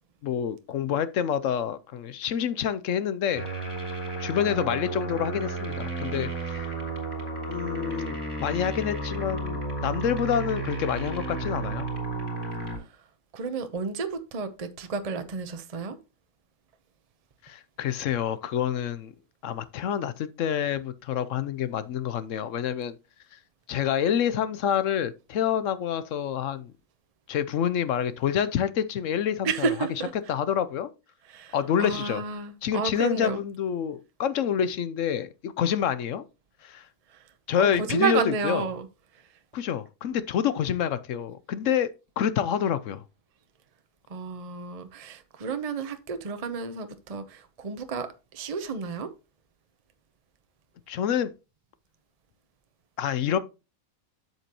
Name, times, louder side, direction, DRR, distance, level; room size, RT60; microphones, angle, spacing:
voice 1, 0.2-3.5 4.2-6.7 7.5-11.9 17.4-19.1 19.4-23.0 23.7-26.7 27.3-29.7 30.3-30.9 31.5-32.2 32.6-36.2 36.6-36.9 37.5-38.6 39.5-41.9 42.2-43.0 50.9-51.3 53.0-53.4, left 9 dB, 65° left, 0.9 m, -27 dB
sound 1, 3.3-12.8, right 3 dB, 15° left, 3.3 m, -33 dB
voice 2, 13.3-16.0 29.4-30.1 31.2-33.4 37.1-37.3 37.6-38.9 44.1-49.1, right 5 dB, 35° right, 0.7 m, -31 dB
8.0 x 7.4 x 2.9 m
omnidirectional pair, 1.5 m